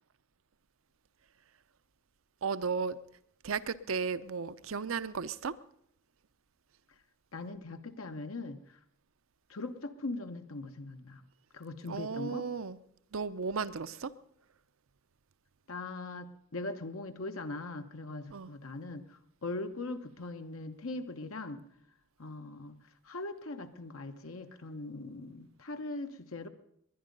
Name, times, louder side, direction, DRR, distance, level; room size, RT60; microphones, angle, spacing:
voice 1, 2.4-3.0 3.4-5.5 11.9-12.8 13.1-14.1 18.3-18.5, right 5 dB, 75° right, 13 dB, 0.7 m, -34 dB
voice 2, 7.3-8.6 9.5-11.2 11.5-12.5 15.7-21.6 22.2-22.7 23.0-26.5, left 2 dB, 80° left, 7 dB, 1.1 m, -40 dB
20.5 x 10.5 x 5.4 m, 0.73 s
head